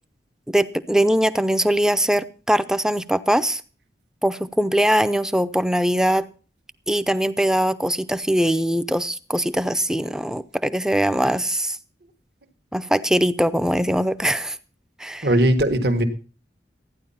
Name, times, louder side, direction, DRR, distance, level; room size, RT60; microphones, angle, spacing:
voice 1, 0.5-3.6 4.2-6.3 6.9-11.8 12.7-14.6 15.0-15.3, equal, 5° right, 0.5 m, -21 dB
voice 2, 15.2-16.0, right 1 dB, 65° right, 1.5 m, -18 dB
14.5 x 9.8 x 5.6 m
head